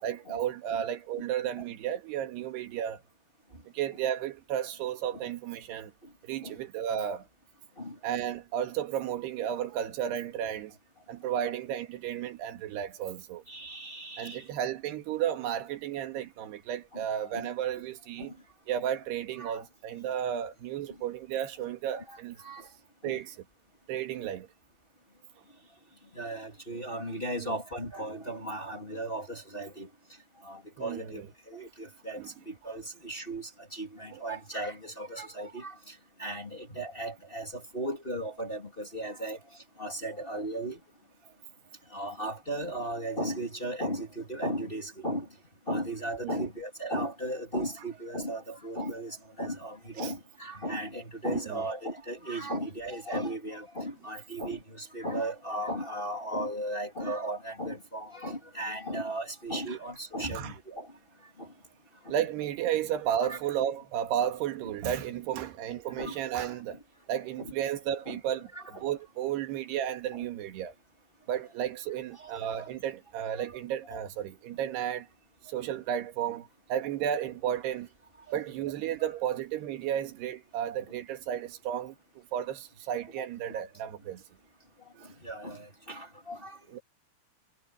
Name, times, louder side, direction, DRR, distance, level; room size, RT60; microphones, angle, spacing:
voice 1, 0.0-3.0 3.7-5.9 6.2-7.3 8.0-10.8 11.1-13.4 14.2-18.4 18.7-22.4 23.0-23.4 23.9-24.5 27.4-27.6 30.8-31.3 32.2-32.3 34.1-34.2 46.2-46.5 50.0-50.1 51.2-51.7 59.7-59.8 60.3-60.5 62.1-66.8 67.1-70.8 71.3-75.1 75.4-77.9 78.3-84.2 84.9-85.1 86.7-86.8, right 10 dB, 85° right, 3.8 m, -33 dB
voice 2, 13.5-14.4 16.9-17.5 18.2-18.3 19.4-19.6 21.9-22.7 23.0-23.2 26.1-29.9 30.4-39.4 39.8-40.8 41.9-45.3 45.7-60.9 61.4-61.5 62.0-62.1 63.2-63.4 66.0-66.2 67.4-67.5 68.1-68.2 68.5-68.9 72.2-72.7 73.5-73.6 73.9-74.0 78.3-78.4 79.0-79.1 83.2-83.6 85.2-86.6, right 1 dB, 15° left, 2.6 m, -36 dB
omnidirectional pair, 4.6 m